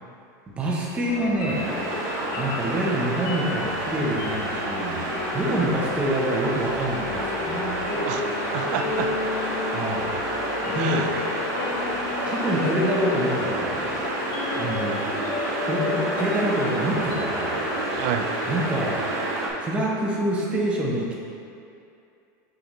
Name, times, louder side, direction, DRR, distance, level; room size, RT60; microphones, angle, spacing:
voice 1, 0.6-1.7 2.4-5.0 5.3-7.8 9.7-10.1 10.7-11.1 12.2-13.8 14.6-15.0 15.7-17.5 18.5-19.0 19.6-21.1, right 1 dB, 10° right, -4 dB, 0.7 m, -26 dB
sound 1, 1.1-18.7, left 5 dB, 55° left, 0.5 m, -33 dB
sound 2, 1.4-19.5, right 2 dB, 90° right, 1.4 m, -29 dB
voice 2, 7.9-9.1 10.7-11.1 17.8-18.3, right 9 dB, 45° right, 6 dB, 0.3 m, -30 dB
6.3 x 4.9 x 3.0 m, 2.6 s
supercardioid pair, 180°, 10 cm